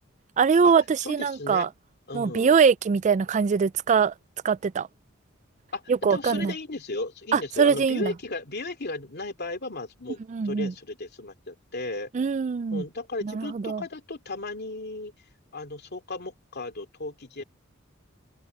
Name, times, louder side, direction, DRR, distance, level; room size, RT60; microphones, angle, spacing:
voice 1, 0.4-1.7 2.1-4.1 4.4-4.9 5.9-6.5 7.3-8.1 10.3-10.7 12.1-12.8 13.2-13.8, right 6 dB, 35° right, 0.3 m, -22 dB
voice 2, 1.0-1.7 2.1-2.6 5.7-12.1 12.7-15.1 15.5-17.4, left 2 dB, 50° left, 2.8 m, -35 dB
head